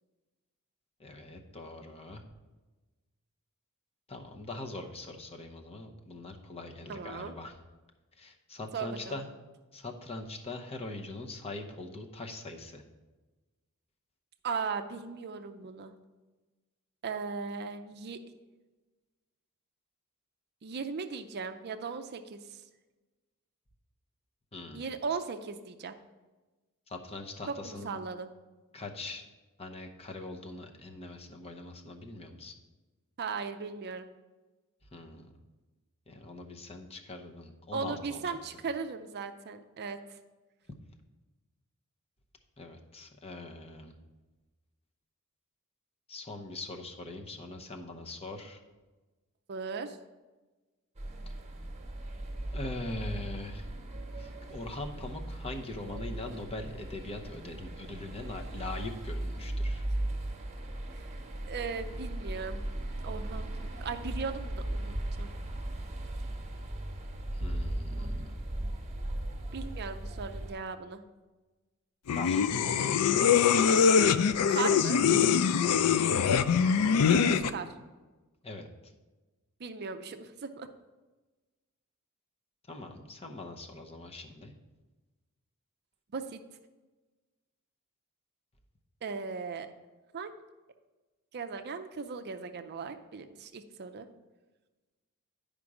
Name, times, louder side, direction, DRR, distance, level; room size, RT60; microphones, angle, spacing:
voice 1, 1.0-2.2 4.1-7.6 8.2-9.3 9.7-12.8 24.5-24.9 26.9-28.0 28.7-29.3 29.6-32.5 34.9-35.3 36.1-38.4 42.6-44.0 46.1-48.6 52.5-53.7 54.2-59.9 67.3-68.4 72.1-72.4 75.6-76.1 78.4-78.9 82.7-84.5, left 2 dB, 25° left, 3 dB, 0.8 m, -42 dB
voice 2, 6.9-7.3 8.7-9.2 14.4-15.9 17.0-18.2 20.6-22.6 24.7-26.0 27.5-28.3 33.2-34.1 37.7-40.0 49.5-50.0 60.9-61.2 61.5-62.6 63.0-63.5 63.8-65.3 67.9-68.7 69.5-71.0 74.5-75.0 77.1-77.7 79.6-80.7 86.1-86.4 89.0-89.7 90.1-90.3 91.3-94.1, right 5 dB, 50° right, 7 dB, 0.5 m, -37 dB
sound 1, 51.0-70.5, right 1 dB, 30° right, 1.2 m, -37 dB
sound 2, 72.1-77.5, left 7 dB, 85° left, 0.4 m, -23 dB
9.9 x 5.2 x 4.8 m, 1.2 s
head